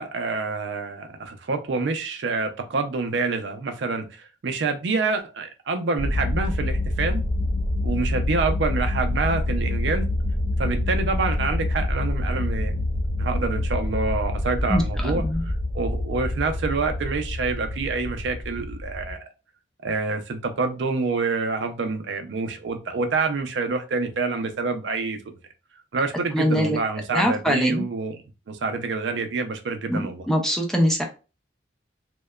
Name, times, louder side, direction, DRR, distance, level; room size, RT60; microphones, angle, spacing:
voice 1, 0.0-7.2 7.8-10.1 10.6-12.8 13.2-19.2 19.8-25.2 25.9-28.1 28.5-30.3, right 4 dB, 75° right, 6 dB, 0.4 m, -27 dB
sound 1, 6.0-19.1, left 1 dB, 30° left, 0.8 m, -26 dB
voice 2, 14.7-15.4 26.3-26.8 27.1-27.9 29.9-31.0, equal, 5° left, 2 dB, 0.4 m, -23 dB
2.8 x 2.1 x 2.2 m, 0.31 s
head